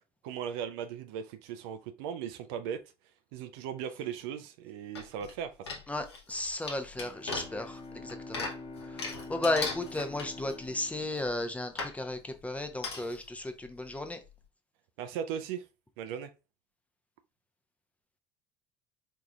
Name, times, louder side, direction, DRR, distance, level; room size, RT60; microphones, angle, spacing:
voice 1, 0.2-2.8 3.3-5.7 15.0-15.6 16.0-16.3, right 8 dB, 65° right, 0.5 m, -38 dB
sound 1, 4.9-5.3 5.7-10.7 11.2-11.3 11.8-12.0 12.8-13.2 13.7-13.8 14.0-14.1, left 3 dB, 85° left, 0.9 m, -38 dB
voice 2, 5.9-8.5 8.9-14.2, left 2 dB, 10° left, 0.7 m, -34 dB
Bowed string instrument, 7.0-12.2, left 3 dB, 40° left, 0.7 m, -46 dB
4.6 x 3.7 x 2.3 m
figure-of-eight pair, 65°, 13 cm